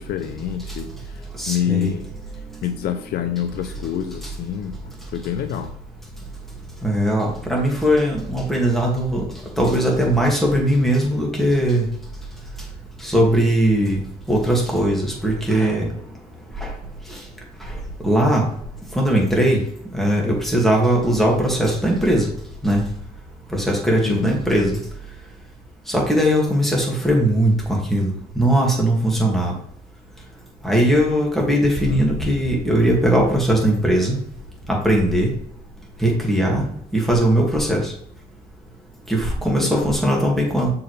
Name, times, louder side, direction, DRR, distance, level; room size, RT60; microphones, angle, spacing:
voice 1, 0.0-2.1 2.6-5.7 24.0-24.3 39.6-39.9, left 9 dB, 65° left, 8 dB, 0.6 m, -27 dB
voice 2, 1.4-1.9 6.8-9.2 9.6-11.9 13.0-14.0 14.3-15.9 16.6-16.7 17.1-17.2 18.0-18.5 18.9-19.6 19.9-22.3 22.6-22.8 23.5-24.8 25.9-29.5 30.6-34.2 34.7-35.3 36.0-36.7 36.9-37.9 39.1-40.7, right 1 dB, ahead, -2 dB, 2.1 m, -19 dB
6.5 x 4.7 x 3.3 m, 0.67 s
cardioid pair, 110°, 17 cm